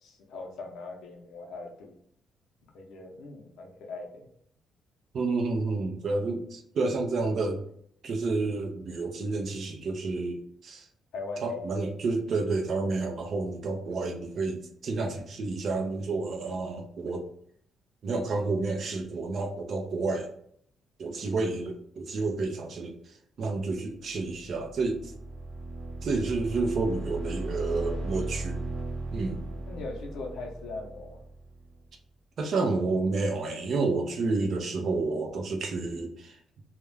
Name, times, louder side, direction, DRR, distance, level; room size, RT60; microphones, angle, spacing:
voice 1, 0.0-2.0 2.7-4.3 11.1-11.6 29.7-31.2, left 3 dB, 70° left, 1 dB, 0.6 m, -40 dB
voice 2, 5.1-7.6 8.0-10.9 11.4-17.2 18.0-20.3 21.0-22.9 23.4-25.1 26.0-28.6 29.1-29.5 32.4-36.4, right 3 dB, 45° right, 3 dB, 0.4 m, -30 dB
sound 1, 24.1-31.8, right 2 dB, 60° right, 0.8 m, -37 dB
2.3 x 2.1 x 3.1 m, 0.67 s
cardioid pair, 175°, 0 cm